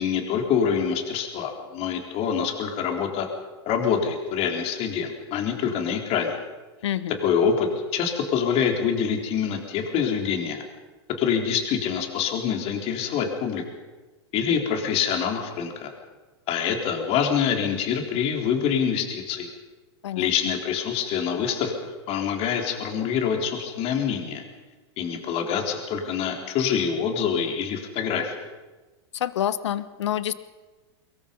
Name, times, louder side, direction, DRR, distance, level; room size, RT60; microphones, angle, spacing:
voice 1, 0.0-3.3 3.7-6.4 7.2-10.6 11.2-13.6 14.3-15.9 16.5-19.5 20.2-21.7 22.1-24.4 25.0-28.4, left 7 dB, 45° left, 3 dB, 4.2 m, -25 dB
voice 2, 6.8-7.2 20.0-20.3 29.1-30.3, left 11 dB, 85° left, 15 dB, 1.1 m, -27 dB
24.0 x 22.5 x 5.5 m, 1.2 s
hypercardioid pair, 120°, 14 cm